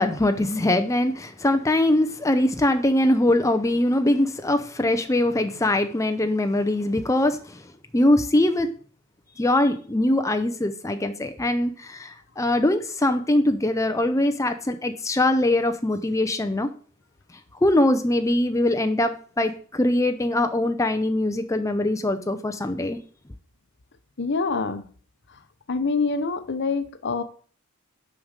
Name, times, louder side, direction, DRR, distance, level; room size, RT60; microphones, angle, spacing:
voice 1, 0.0-7.6 7.9-8.7 9.4-16.7 17.6-23.0, left 1 dB, 15° left, 8 dB, 0.6 m, -22 dB
voice 2, 24.2-24.8 25.7-27.2, left 4 dB, 55° left, 11 dB, 0.8 m, -25 dB
6.7 x 5.2 x 6.5 m, 0.43 s
head